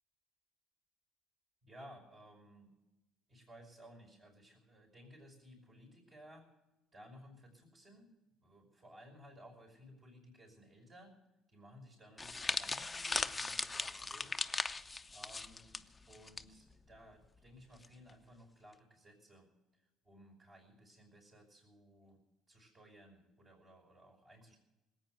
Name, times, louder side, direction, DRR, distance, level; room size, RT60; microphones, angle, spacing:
voice 1, 1.6-2.7 3.3-6.5 6.9-8.2 8.4-11.2 11.5-14.4 15.1-15.8 16.1-22.2 22.5-24.6, equal, 40° right, 1 dB, 5.2 m, -58 dB
sound 1, 12.2-16.4 16.7-16.9 17.8-18.1, left 3 dB, 20° left, 0.7 m, -38 dB
19.5 x 9.0 x 7.8 m, 1.0 s
hypercardioid pair, 65°, 0 cm